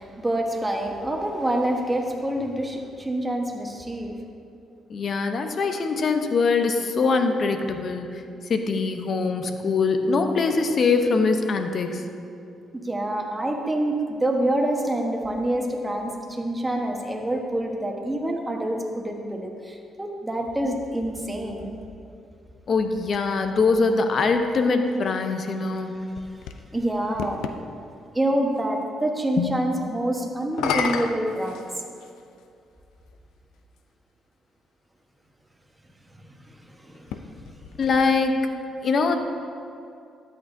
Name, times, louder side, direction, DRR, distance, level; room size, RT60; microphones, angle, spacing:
voice 1, 0.0-4.2 12.7-21.7 26.7-27.4 28.1-31.6 36.3-37.5, right 1 dB, 15° right, 1 dB, 1.2 m, -27 dB
voice 2, 4.9-12.0 22.7-25.9 29.4-29.5 37.8-38.5 38.8-39.2, left 4 dB, 50° left, 6 dB, 0.8 m, -23 dB
sound 1, 25.8-27.6 30.4-32.2 33.1-33.2 36.9-38.5, left 7 dB, 90° left, 0.4 m, -32 dB
12.5 x 8.6 x 2.7 m, 2.5 s
cardioid pair, 90°, 0 cm